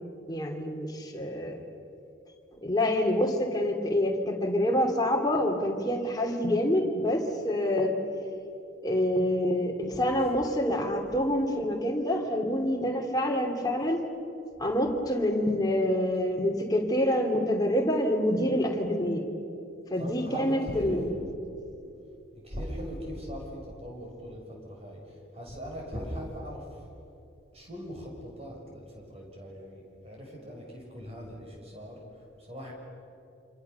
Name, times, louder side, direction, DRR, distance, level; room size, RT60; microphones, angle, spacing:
voice 1, 0.3-1.6 2.6-8.0 8.8-14.0 14.6-19.3 19.9-21.1, left 1 dB, 20° left, 1 dB, 2.9 m, -27 dB
voice 2, 20.0-21.3 22.4-26.9 27.5-32.0 32.4-32.7, equal, 30° right, -1 dB, 6.5 m, -40 dB
28.0 x 27.0 x 6.9 m, 2.7 s
head